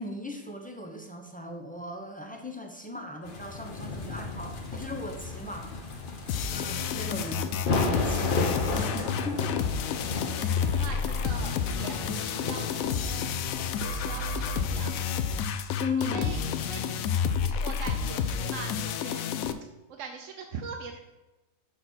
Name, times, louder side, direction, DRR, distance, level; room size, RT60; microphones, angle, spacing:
voice 1, 0.0-6.2 6.5-9.6 15.8-16.5, left 2 dB, 10° left, 2 dB, 0.6 m, -38 dB
sound 1, 3.2-14.9, left 3 dB, 45° left, 1.0 m, -34 dB
sound 2, 6.3-19.5, left 7 dB, 85° left, 1.0 m, -30 dB
voice 2, 10.1-13.3 13.8-14.9 16.0-16.9 17.4-19.3 19.9-21.0, right 5 dB, 70° right, 3 dB, 1.0 m, -42 dB
6.8 x 4.0 x 6.1 m, 1.1 s
omnidirectional pair, 1.4 m